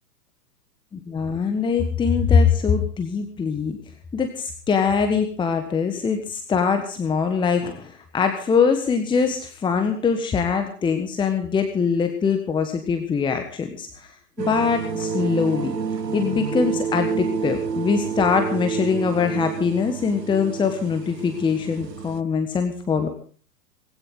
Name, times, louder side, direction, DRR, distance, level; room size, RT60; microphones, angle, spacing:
voice 1, 0.9-3.8 4.1-14.1 14.4-15.7 16.1-23.1, left 5 dB, 10° left, 6 dB, 1.5 m, -23 dB
sound 1, 14.4-22.2, right 6 dB, 85° right, 0.9 m, -29 dB
19.5 x 16.5 x 3.9 m, 0.44 s
figure-of-eight pair, 110°, 49 cm